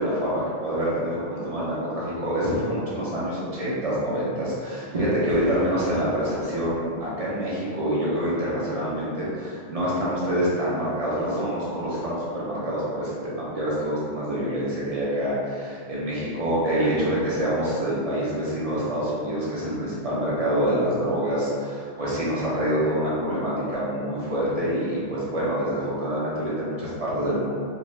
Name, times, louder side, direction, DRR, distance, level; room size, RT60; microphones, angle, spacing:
voice 1, 0.0-27.6, equal, 45° right, -8 dB, 0.5 m, -26 dB
Explosion, 5.3-8.3, equal, 25° left, 0.5 m, -41 dB
2.4 x 2.0 x 3.1 m, 2.3 s
omnidirectional pair, 1.2 m